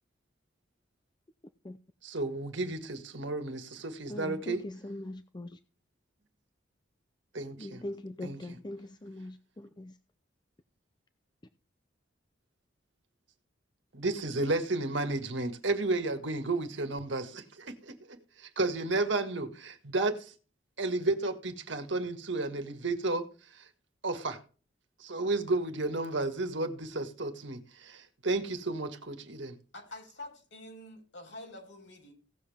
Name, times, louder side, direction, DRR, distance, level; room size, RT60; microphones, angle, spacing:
voice 1, 2.0-4.6 7.3-7.8 8.2-8.4 13.9-20.3 20.8-23.3 23.5-23.7 24.0-24.4 25.0-29.6, right 2 dB, 65° right, 1.8 m, -32 dB
voice 2, 4.1-5.6 7.6-9.9, left 1 dB, 25° left, 0.5 m, -41 dB
voice 3, 29.7-32.1, left 2 dB, 70° left, 6.8 m, -47 dB
17.0 x 7.4 x 3.5 m
head